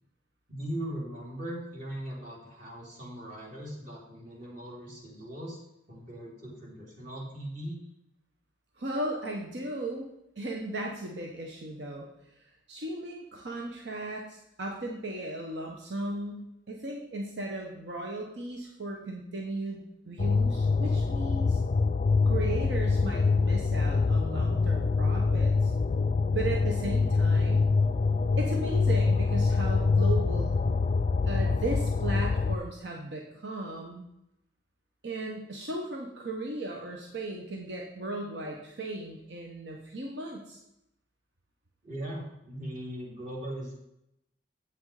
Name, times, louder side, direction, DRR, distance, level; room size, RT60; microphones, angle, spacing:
voice 1, 0.5-5.6 5.9-7.8 41.8-43.7, right 1 dB, 45° right, -2 dB, 2.8 m, -39 dB
voice 2, 8.8-10.1 10.4-12.1 12.3-21.6 22.2-25.7 26.3-27.7 28.4-30.6 31.2-34.1 35.0-40.6, right 2 dB, 70° right, 0 dB, 1.1 m, -36 dB
sound 1, 20.2-32.6, left 4 dB, 40° left, 0.3 m, -25 dB
8.1 x 6.1 x 4.9 m, 0.82 s
head